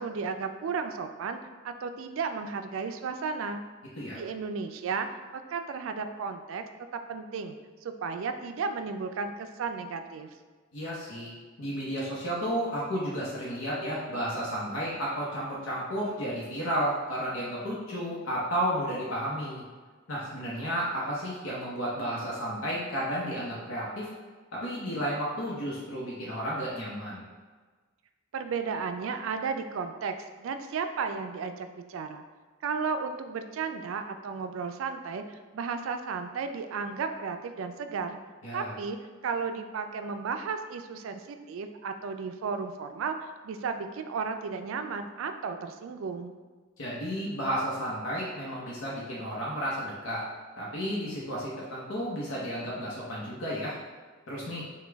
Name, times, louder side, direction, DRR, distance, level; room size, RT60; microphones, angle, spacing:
voice 1, 0.0-1.4 1.6-3.6 4.1-5.1 5.3-6.6 7.1-7.6 7.8-10.3 28.3-32.2 32.6-38.2 38.5-39.0 39.2-46.3, right 5 dB, 75° right, 7 dB, 0.3 m, -34 dB
voice 2, 10.7-11.3 11.6-19.6 20.1-24.1 24.5-27.2 38.4-38.7 46.8-50.2 50.6-53.7 54.3-54.6, equal, 85° left, -6 dB, 0.8 m, -32 dB
5.1 x 2.3 x 3.4 m, 1.4 s
head